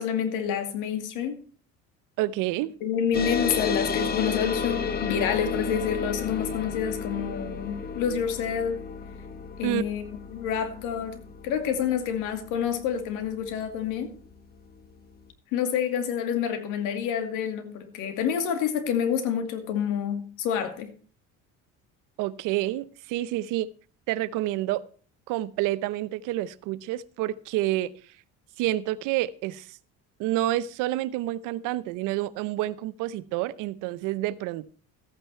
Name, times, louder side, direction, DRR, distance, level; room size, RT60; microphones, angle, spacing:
voice 1, 0.0-1.4 2.8-8.8 9.6-10.0 10.3-11.2 11.4-14.1 15.5-20.9, left 8 dB, 85° left, 7 dB, 2.4 m, -28 dB
voice 2, 2.2-2.7 9.6-9.8 22.2-23.7 24.1-24.8 25.3-27.9 28.6-29.8 30.2-34.7, right 15 dB, 80° right, 17 dB, 0.8 m, -28 dB
sound 1, 3.1-14.1, left 5 dB, 30° left, 1.3 m, -32 dB
14.0 x 9.0 x 4.4 m, 0.40 s
cardioid pair, 110°, 31 cm